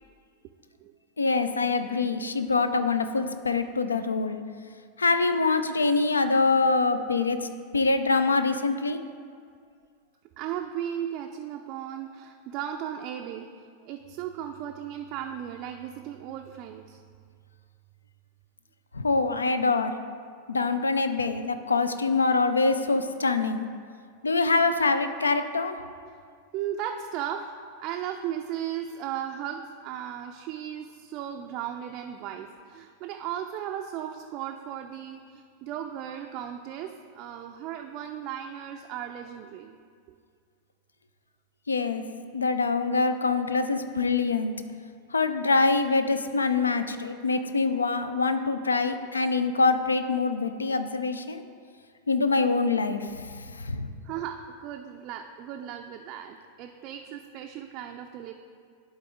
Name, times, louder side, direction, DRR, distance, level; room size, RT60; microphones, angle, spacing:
voice 1, 1.2-4.4 5.0-7.5 7.7-9.0 18.9-20.0 20.5-23.7 24.2-25.8 41.7-42.0 42.3-44.5 45.1-51.4 52.1-53.9, left 3 dB, 75° left, 10 dB, 0.4 m, -25 dB
voice 2, 6.7-7.0 10.4-13.5 13.8-17.0 24.7-24.8 26.5-27.4 27.8-39.8 54.0-58.3, right 10 dB, 40° right, 3 dB, 0.4 m, -36 dB
11.0 x 4.1 x 3.7 m, 2.1 s
figure-of-eight pair, 90°, 0 cm